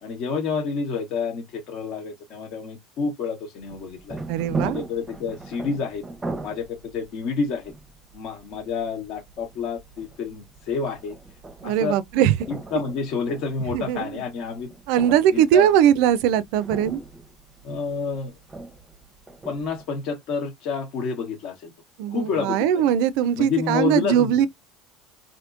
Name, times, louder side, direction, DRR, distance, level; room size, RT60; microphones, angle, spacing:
voice 1, 0.0-4.2 4.6-6.0 6.4-7.7 8.1-11.1 11.6-12.0 12.5-14.7 15.3-15.7 17.6-18.4 19.4-21.7 22.1-22.9 23.3-24.4, left 5 dB, 60° left, 1.0 m, -29 dB
sound 1, 3.6-19.8, right 2 dB, 15° right, 0.7 m, -39 dB
voice 2, 4.3-4.8 11.6-12.3 13.7-14.1 14.9-17.0 22.0-24.5, right 10 dB, 70° right, 0.4 m, -20 dB
3.5 x 2.6 x 2.5 m
supercardioid pair, 105°, 0 cm